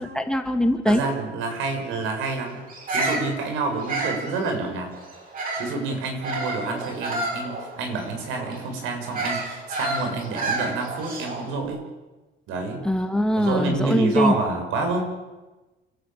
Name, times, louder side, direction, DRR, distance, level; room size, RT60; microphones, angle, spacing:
voice 1, 0.0-1.0 12.8-14.3, equal, 5° left, 5 dB, 2.0 m, -22 dB
voice 2, 0.9-2.6 2.9-4.9 5.6-11.8 12.5-12.8 13.4-15.0, right 3 dB, 85° right, 3 dB, 6.6 m, -28 dB
Bird vocalization bird call bird song, 2.7-5.8 6.2-11.5, right 2 dB, 45° right, 7.4 m, -30 dB
28.5 x 13.5 x 9.1 m, 1.1 s
cardioid pair, 140°, 20 cm